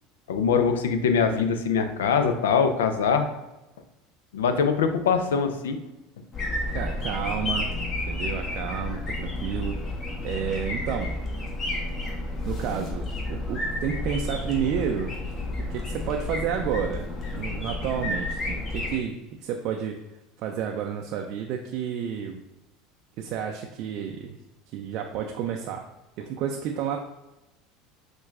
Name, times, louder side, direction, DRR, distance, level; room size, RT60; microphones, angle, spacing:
voice 1, 0.3-3.3 4.3-5.8, left 6 dB, 80° left, 8 dB, 0.4 m, -23 dB
sound 1, 6.3-19.0, left 2 dB, 35° left, 1.0 m, -31 dB
voice 2, 6.7-7.7 8.1-9.8 10.2-11.1 12.5-15.1 15.7-17.1 17.3-20.0 20.4-22.4 23.2-24.4 24.7-25.8 26.2-27.0, right 8 dB, 55° right, 2 dB, 0.4 m, -30 dB
5.9 x 2.2 x 2.4 m, 0.99 s
hypercardioid pair, 80°, 0 cm